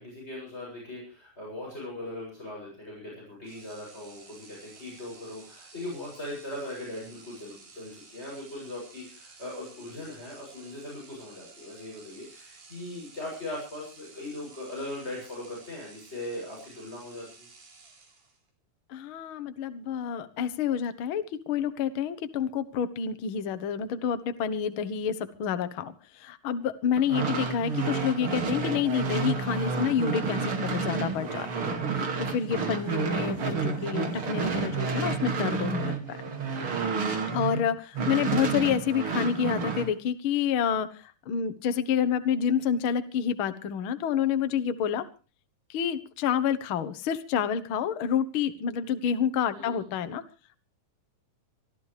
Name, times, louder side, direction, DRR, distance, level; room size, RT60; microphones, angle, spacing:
voice 1, 0.0-17.5 49.5-49.8, left 1 dB, 15° left, -3 dB, 7.7 m, -39 dB
sound 1, 3.4-18.5, right 4 dB, 80° right, 5.7 m, -53 dB
voice 2, 18.9-36.2 37.3-45.1 45.7-50.2, left 8 dB, 75° left, 10 dB, 1.2 m, -28 dB
sound 2, 27.0-37.6 37.9-39.9, right 4 dB, 40° right, 2.7 m, -30 dB
25.0 x 13.5 x 3.3 m, 0.34 s
omnidirectional pair, 4.0 m